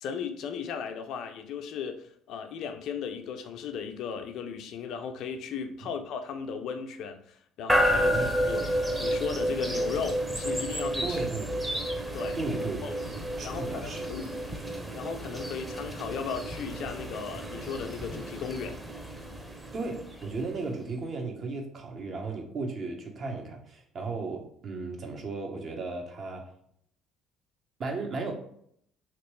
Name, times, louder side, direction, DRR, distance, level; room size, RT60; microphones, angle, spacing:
voice 1, 0.0-8.7 9.0-11.2 12.1-12.4 12.8-13.0 13.4-14.4 14.9-18.8, left 6 dB, 60° left, 7 dB, 0.4 m, -36 dB
sound 1, 7.7-20.7, equal, 5° right, 0.7 m, -31 dB
voice 2, 7.9-8.3 11.0-11.7 12.3-14.1 19.7-26.5 27.8-28.3, right 3 dB, 45° right, 2 dB, 0.8 m, -35 dB
3.0 x 2.9 x 3.0 m, 0.66 s
hypercardioid pair, 55°, 0 cm